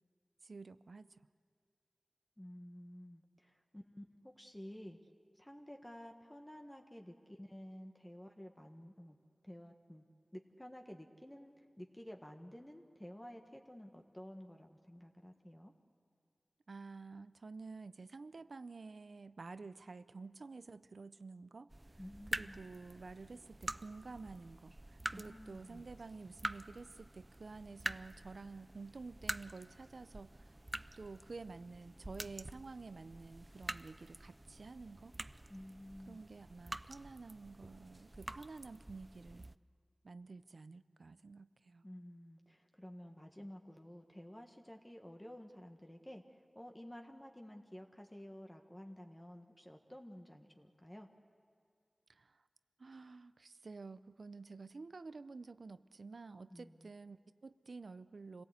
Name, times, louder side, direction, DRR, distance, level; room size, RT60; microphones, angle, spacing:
voice 1, 0.4-1.2 16.7-30.5 31.0-35.2 36.0-39.5 40.0-41.8 52.1-52.4 52.8-58.4, right 4 dB, 85° right, 13 dB, 0.6 m, -50 dB
voice 2, 2.4-5.0 5.3-9.2 9.4-10.0 10.3-15.7 22.0-22.6 25.1-25.9 35.5-36.2 41.8-51.1 56.5-56.9, equal, 15° left, 3 dB, 1.5 m, -52 dB
sound 1, 21.7-39.6, right 1 dB, 25° right, 0.5 m, -47 dB
26.5 x 17.5 x 8.2 m, 2.2 s
wide cardioid pair, 55°, 0 cm